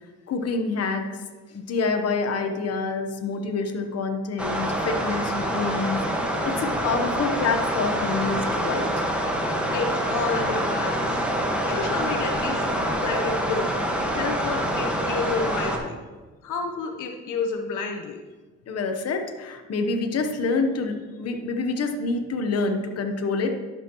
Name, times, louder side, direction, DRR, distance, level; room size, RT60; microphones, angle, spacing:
voice 1, 0.3-1.2 1.5-8.9 18.7-23.6, left 4 dB, 55° left, 5 dB, 1.0 m, -27 dB
sound 1, 4.4-15.8, equal, 5° right, 1.4 m, -26 dB
voice 2, 9.7-12.6 13.0-15.9 16.4-18.2, left 4 dB, 80° left, 4 dB, 0.9 m, -30 dB
11.5 x 6.3 x 3.0 m, 1.3 s
cardioid pair, 90°, 30 cm